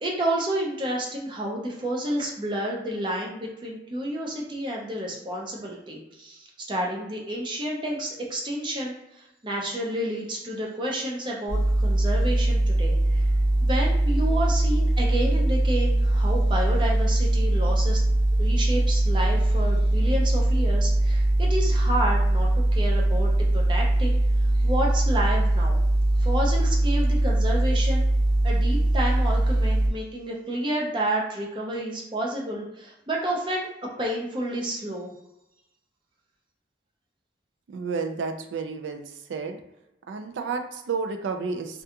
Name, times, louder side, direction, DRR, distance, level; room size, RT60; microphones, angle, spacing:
voice 1, 0.0-13.3 13.6-18.0 18.4-24.2 24.6-25.8 26.2-28.1 28.4-33.7 34.0-35.1, right 1 dB, 25° right, -2 dB, 0.5 m, -30 dB
sound 1, 11.5-29.9, right 1 dB, 25° left, 0.6 m, -21 dB
voice 2, 37.7-39.0 39.3-39.6 40.1-41.8, right 5 dB, 85° right, 6 dB, 0.4 m, -31 dB
2.4 x 2.2 x 2.7 m, 0.88 s
head